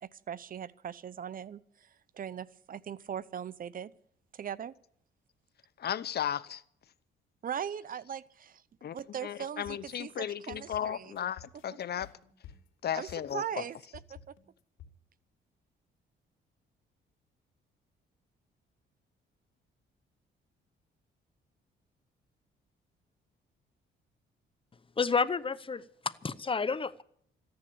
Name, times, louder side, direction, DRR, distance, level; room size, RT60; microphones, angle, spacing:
voice 1, 0.0-3.9 4.3-4.7 7.4-8.6 8.9-11.2 12.9-13.8 14.1-14.4, right 8 dB, 45° right, 0.7 m, -40 dB
voice 2, 5.8-6.6 8.8-9.0 9.2-12.1 12.8-13.6, left 9 dB, 55° left, 0.9 m, -35 dB
sound 1, 9.6-14.9, left 8 dB, 85° left, 2.7 m, -52 dB
voice 3, 25.0-27.0, left 5 dB, 25° left, 0.8 m, -30 dB
14.5 x 10.5 x 8.6 m
cardioid pair, 90°, 20 cm